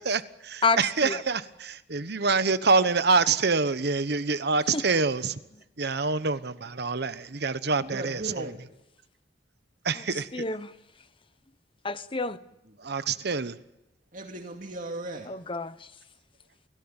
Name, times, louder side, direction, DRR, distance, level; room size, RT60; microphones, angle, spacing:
voice 1, 0.1-5.4 5.8-8.5 9.8-10.4 12.8-13.6, right 4 dB, 60° right, 1.1 m, -26 dB
voice 2, 0.6-1.2 4.7-4.8 10.0-10.1 10.3-10.7 11.8-12.4 15.3-15.9, left 4 dB, 30° left, 1.0 m, -29 dB
voice 3, 7.8-8.6 12.7-12.8 14.1-15.3, right 2 dB, 45° right, 2.3 m, -37 dB
28.5 x 17.5 x 9.0 m
head